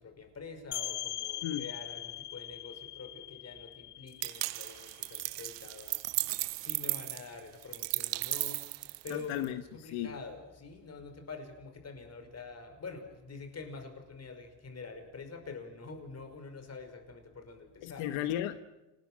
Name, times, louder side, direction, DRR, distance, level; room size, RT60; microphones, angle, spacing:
voice 1, 0.0-6.0 6.6-8.6 9.0-18.1, left 4 dB, 35° left, 7 dB, 5.6 m, -46 dB
sound 1, 0.7-6.2, left 12 dB, 60° left, 1.5 m, -42 dB
sound 2, 4.2-9.4, right 19 dB, 65° right, 0.8 m, -35 dB
voice 2, 9.1-10.1 17.8-18.6, left 12 dB, 85° left, 10 dB, 1.3 m, -35 dB
29.5 x 20.0 x 6.4 m, 1.0 s
cardioid pair, 120°, 46 cm